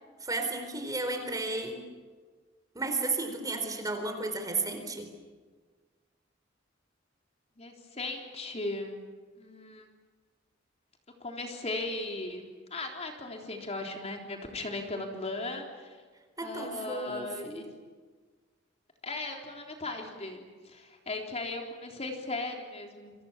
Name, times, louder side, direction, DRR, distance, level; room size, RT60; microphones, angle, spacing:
voice 1, 0.2-1.8 2.7-5.1 16.4-17.6, right 3 dB, 20° right, 6 dB, 4.0 m, -33 dB
voice 2, 7.6-9.0 9.4-9.8 11.2-12.4 12.7-16.0 16.4-17.7 19.0-23.1, left 2 dB, 35° left, 2 dB, 3.6 m, -37 dB
28.5 x 24.5 x 7.3 m, 1.5 s
head